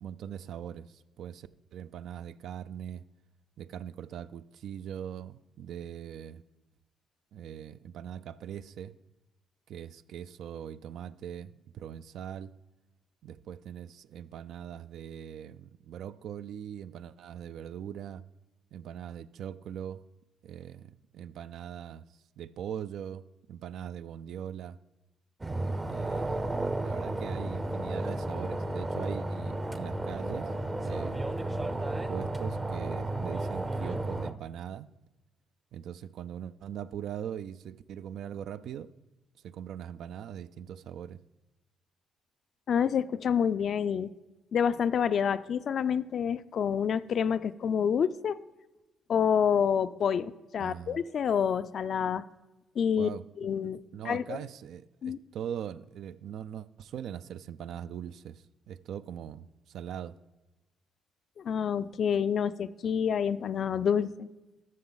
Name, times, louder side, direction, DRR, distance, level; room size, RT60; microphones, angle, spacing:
voice 1, 0.0-3.0 3.6-6.4 7.3-8.9 9.7-12.5 13.2-18.2 18.7-20.0 20.4-22.0 22.4-24.8 25.8-30.5 30.8-31.3 32.1-34.9 35.7-38.9 39.4-41.2 50.6-51.0 53.0-53.5 53.9-60.1, right 9 dB, 75° right, 14 dB, 0.3 m, -41 dB
sound 1, 25.4-34.3, right 2 dB, 20° right, 0.6 m, -33 dB
voice 2, 42.7-44.1 44.5-48.4 49.1-52.2 52.8-53.1 53.4-53.8 54.0-54.4 55.0-55.2 61.4-64.3, left 7 dB, 60° left, 14 dB, 0.4 m, -28 dB
12.5 x 6.4 x 3.9 m, 1.1 s
cardioid pair, 90°, 0 cm